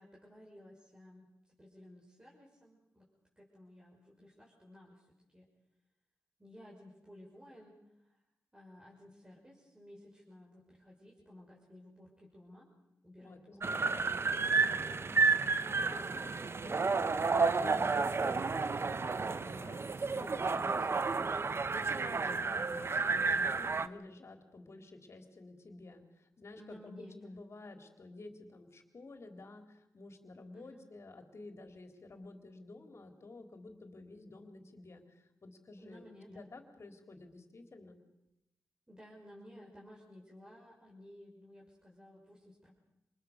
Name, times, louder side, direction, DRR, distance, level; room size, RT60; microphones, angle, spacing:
voice 1, 0.0-3.1 3.4-5.5 6.4-8.1 8.5-12.7 13.0-13.7 14.6-15.1 26.5-27.3 30.5-30.9 35.8-36.5 38.9-42.7, left 1 dB, 15° right, -3 dB, 6.0 m, -56 dB
voice 2, 13.2-14.0 15.8-21.6 21.8-38.0, left 2 dB, 50° left, 5 dB, 3.9 m, -52 dB
sound 1, 13.6-23.9, right 4 dB, 45° right, 1.0 m, -31 dB
27.0 x 20.5 x 6.8 m, 0.88 s
cardioid pair, 55°, 6 cm